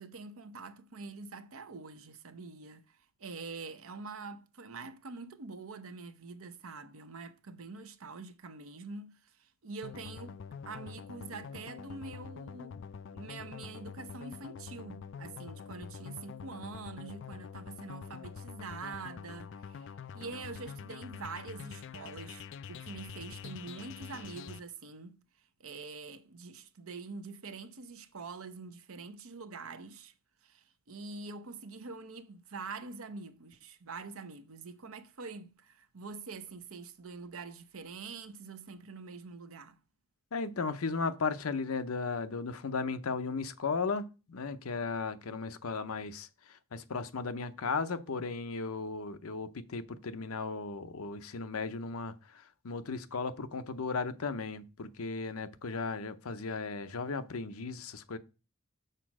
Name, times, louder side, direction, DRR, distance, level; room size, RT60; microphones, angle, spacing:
voice 1, 0.0-12.8 13.1-19.9 20.1-25.2 25.6-30.1 30.4-39.8, right 4 dB, 75° right, 0.8 m, -45 dB
sound 1, 9.8-24.6, left 6 dB, 55° left, 0.3 m, -46 dB
voice 2, 40.3-58.2, left 4 dB, 80° left, 0.7 m, -36 dB
6.7 x 4.2 x 6.1 m
head